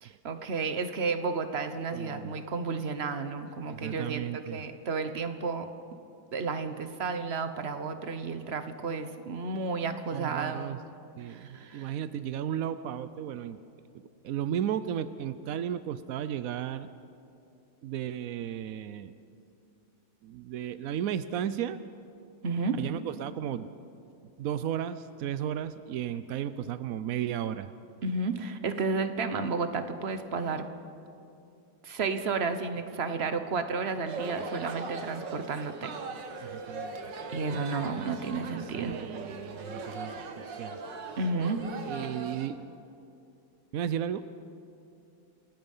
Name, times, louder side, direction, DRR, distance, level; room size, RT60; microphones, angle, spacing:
voice 1, 0.0-5.7 6.3-10.8 11.3-11.9 22.4-22.8 28.0-30.7 31.8-35.9 36.3-36.6 37.3-38.9 41.2-41.6 41.9-42.1, right 4 dB, 40° right, 9 dB, 1.1 m, -32 dB
voice 2, 1.9-2.4 3.7-4.6 10.1-10.8 11.2-13.6 14.2-16.9 17.8-19.1 20.2-21.8 22.8-23.7 24.4-27.7 36.4-37.0 38.8-40.8 41.9-42.6 43.7-44.3, right 10 dB, 80° right, 13 dB, 0.7 m, -34 dB
sound 1, 34.1-42.5, right 4 dB, 60° right, 2.1 m, -39 dB
27.5 x 19.0 x 5.5 m, 2.6 s
omnidirectional pair, 2.2 m